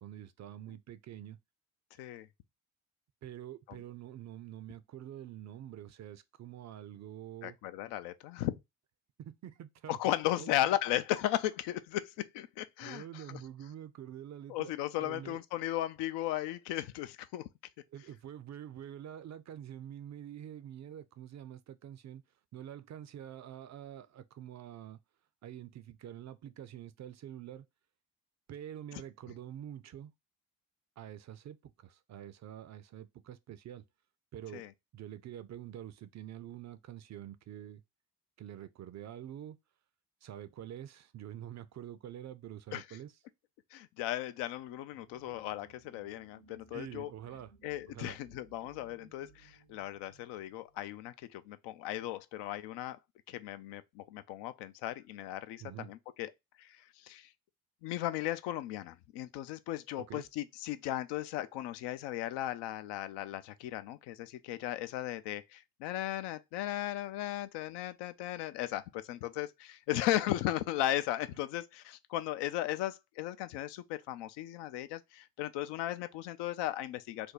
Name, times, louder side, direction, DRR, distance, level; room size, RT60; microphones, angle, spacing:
voice 1, 0.0-1.4 3.2-7.6 9.2-10.0 10.4-10.5 12.8-15.4 17.9-22.2 22.5-25.0 25.4-27.7 28.5-30.1 31.0-33.8 34.3-34.6 34.9-37.8 38.4-39.6 40.2-43.1 46.7-47.5 47.9-48.2 55.6-55.9 60.0-60.2, right 11 dB, 40° right, 0.4 m, -46 dB
voice 2, 7.4-8.5 9.9-13.4 14.5-17.4 28.9-29.0 34.5-34.7 42.7-42.8 43.7-47.1 47.6-53.0 53.3-56.3 56.6-56.8 57.0-57.3 57.8-77.3, left 13 dB, 70° left, 0.5 m, -36 dB
sound 1, 44.9-51.3, right 4 dB, 85° right, 0.8 m, -62 dB
2.7 x 2.2 x 3.8 m
hypercardioid pair, 50°, 43 cm